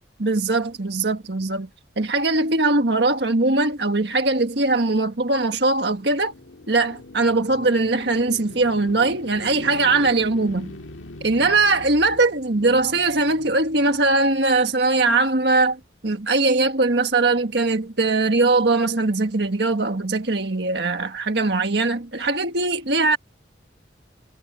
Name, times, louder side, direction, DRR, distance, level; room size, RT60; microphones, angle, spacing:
voice 1, 0.2-1.7 2.0-6.3 6.7-10.7 11.2-23.2, right 3 dB, 65° right, 1.6 m, -21 dB
sound 1, 5.3-14.6, left 1 dB, 90° left, 2.1 m, -42 dB
head